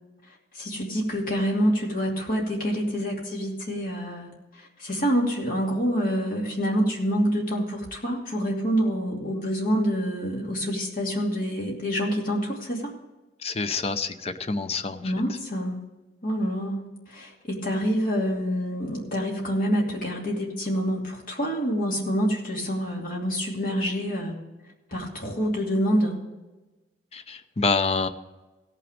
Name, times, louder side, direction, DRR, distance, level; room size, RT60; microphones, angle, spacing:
voice 1, 0.5-12.9 15.0-15.8 16.2-24.4 24.9-26.2, equal, 50° left, -2 dB, 2.6 m, -27 dB
voice 2, 13.4-15.0 27.1-28.1, left 4 dB, 35° left, 9 dB, 0.6 m, -27 dB
17.0 x 6.0 x 5.1 m, 1.1 s
head